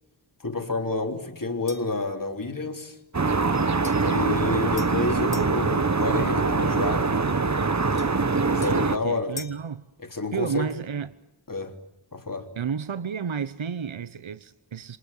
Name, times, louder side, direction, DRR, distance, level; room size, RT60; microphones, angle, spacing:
voice 1, 0.4-3.0 4.0-7.1 8.4-9.4 10.1-10.7 11.5-11.7 12.1-12.5, left 3 dB, 45° left, 3.8 m, -29 dB
sound 1, 1.7-2.0 3.8-5.6 8.0-9.7, left 4 dB, 70° left, 2.5 m, -44 dB
sound 2, 3.1-9.0, right 4 dB, 35° right, 1.3 m, -23 dB
voice 2, 8.6-9.8 10.3-11.2 12.5-15.0, right 7 dB, 80° right, 1.1 m, -31 dB
29.5 x 25.5 x 7.4 m
wide cardioid pair, 70°, 46 cm